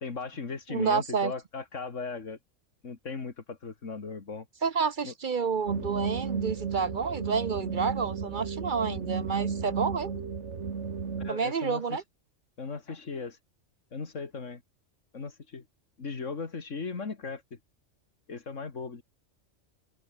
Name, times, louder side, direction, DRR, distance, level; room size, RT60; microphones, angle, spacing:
voice 1, 0.0-2.4 2.8-4.5 5.0-5.1 11.2-12.0 12.6-13.4 13.9-14.6 15.1-15.6 16.0-17.6 18.3-19.0, left 4 dB, 85° left, 2.6 m, -37 dB
voice 2, 0.7-1.3 4.6-10.2 11.3-12.0, right 5 dB, 50° right, 0.8 m, -29 dB
sound 1, 5.7-11.3, right 5 dB, 70° right, 1.9 m, -33 dB
open air
omnidirectional pair, 1.2 m